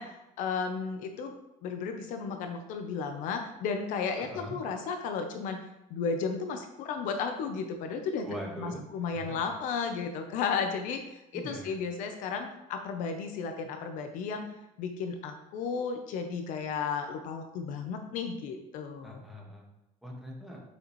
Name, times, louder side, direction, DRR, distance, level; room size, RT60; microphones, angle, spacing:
voice 1, 0.0-1.3 1.6-5.6 5.9-8.3 8.6-14.4 14.8-19.2, left 5 dB, 60° left, 6 dB, 0.9 m, -34 dB
voice 2, 4.2-4.6 8.2-9.4 11.3-11.8 19.0-19.6 20.0-20.6, equal, ahead, -3 dB, 1.7 m, -42 dB
8.7 x 6.7 x 3.2 m, 0.91 s
cardioid pair, 160°, 15 cm